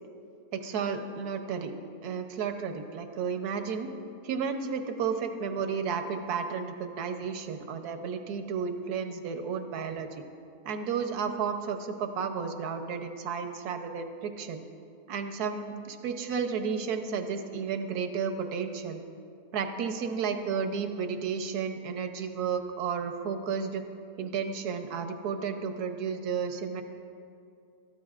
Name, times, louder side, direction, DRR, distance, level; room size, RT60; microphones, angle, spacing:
voice 1, 0.5-1.7 2.0-3.9 4.2-10.2 10.6-14.6 15.1-19.0 19.5-23.8 24.2-26.8, right 6 dB, 80° right, 6 dB, 1.4 m, -32 dB
23.0 x 13.5 x 2.5 m, 2.5 s
omnidirectional pair, 1.7 m